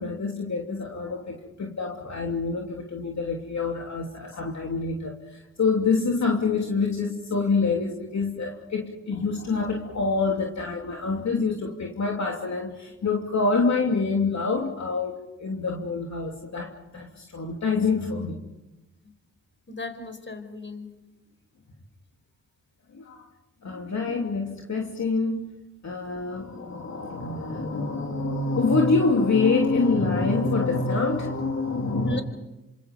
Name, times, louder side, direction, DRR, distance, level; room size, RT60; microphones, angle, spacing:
voice 1, 0.0-18.4 22.9-23.2 23.6-25.5 25.8-32.2, left 4 dB, 55° left, 0 dB, 3.1 m, -26 dB
voice 2, 19.7-20.9 32.0-32.2, left 1 dB, 35° left, 8 dB, 4.9 m, -35 dB
28.0 x 26.0 x 5.5 m, 0.99 s
supercardioid pair, 50°, 34 cm